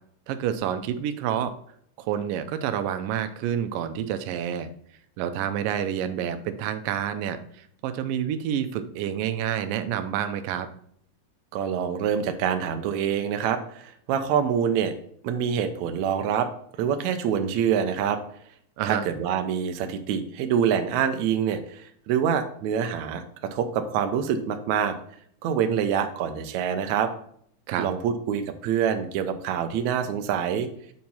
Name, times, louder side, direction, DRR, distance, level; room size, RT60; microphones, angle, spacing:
voice 1, 0.3-1.5 2.0-4.7 5.2-10.7 18.8-19.0 27.7-27.9, right 9 dB, 90° right, 9 dB, 2.4 m, -28 dB
voice 2, 11.5-14.9 15.2-16.5 16.8-18.2 18.8-23.2 23.5-25.0 25.4-27.1 27.8-30.7, right 8 dB, 70° right, 6 dB, 1.9 m, -26 dB
7.5 x 4.5 x 5.4 m, 0.65 s
omnidirectional pair, 3.8 m